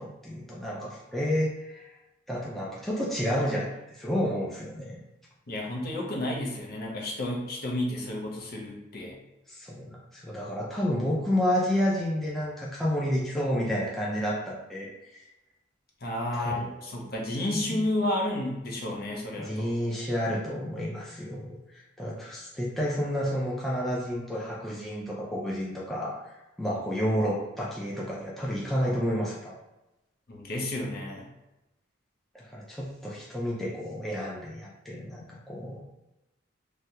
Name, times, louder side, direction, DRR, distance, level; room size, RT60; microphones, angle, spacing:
voice 1, 0.0-1.9 2.3-5.0 9.5-15.2 16.3-16.7 17.0-17.1 17.5-17.8 19.4-26.3 26.6-29.5 32.3-35.8, equal, ahead, -6 dB, 0.4 m, -30 dB
voice 2, 5.5-9.2 16.0-19.7 30.3-31.3, left 1 dB, 50° left, -1 dB, 0.7 m, -31 dB
3.3 x 2.2 x 2.8 m, 0.97 s
head